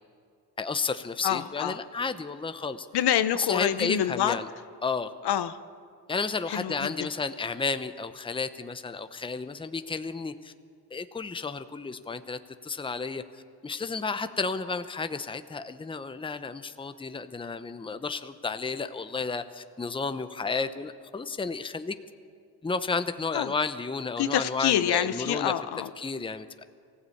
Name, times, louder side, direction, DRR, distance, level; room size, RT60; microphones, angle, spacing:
voice 1, 0.6-2.9 3.3-4.5 4.8-5.1 6.1-10.5 10.9-13.2 13.6-21.9 22.6-25.5 26.0-26.6, left 4 dB, 10° left, 10 dB, 0.8 m, -32 dB
voice 2, 1.2-1.8 2.9-4.4 5.2-5.6 6.5-7.1 23.3-23.5 24.2-25.9, left 11 dB, 70° left, 12 dB, 1.0 m, -27 dB
23.5 x 15.5 x 8.6 m, 2.3 s
cardioid pair, 110°, 41 cm